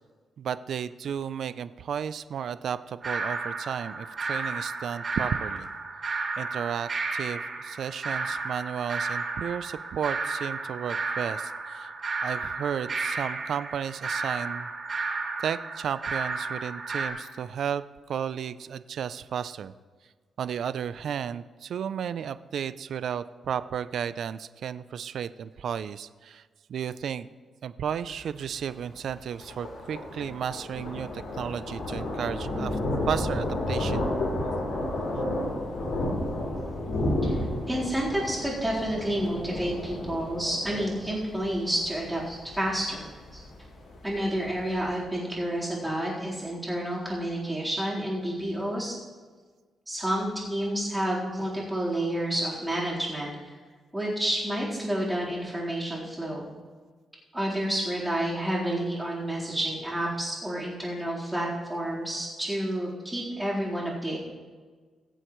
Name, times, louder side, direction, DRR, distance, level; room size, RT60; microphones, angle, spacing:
voice 1, 0.4-5.7 6.4-11.9 12.2-14.7 15.4-17.8 18.1-19.7 20.4-26.4 26.7-27.3 27.6-32.8 33.1-34.0, right 8 dB, 70° right, 14 dB, 0.4 m, -33 dB
sound 1, 3.0-17.1, right 3 dB, 45° right, 2.3 m, -33 dB
Thunder, 28.0-44.9, left 1 dB, 85° left, 3.8 m, -32 dB
voice 2, 37.7-43.1 43.3-43.4 44.0-48.9 49.9-53.6 53.9-56.5 57.3-64.2, right 1 dB, 10° right, -7 dB, 3.9 m, -30 dB
21.5 x 7.8 x 3.1 m, 1.5 s
cardioid pair, 105°, 0 cm